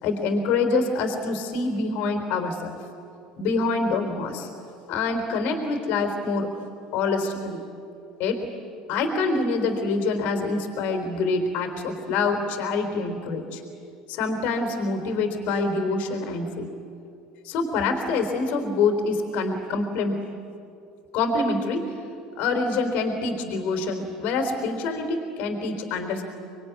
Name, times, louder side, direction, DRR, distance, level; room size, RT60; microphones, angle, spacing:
voice 1, 0.0-2.7 3.4-4.5 4.9-6.5 6.9-7.6 8.2-8.4 8.9-13.6 14.1-16.7 17.4-20.2 21.1-21.9 22.4-26.2, left 3 dB, 65° left, 5 dB, 3.7 m, -26 dB
25.5 x 21.5 x 9.6 m, 2.6 s
hypercardioid pair, 70°, 3 cm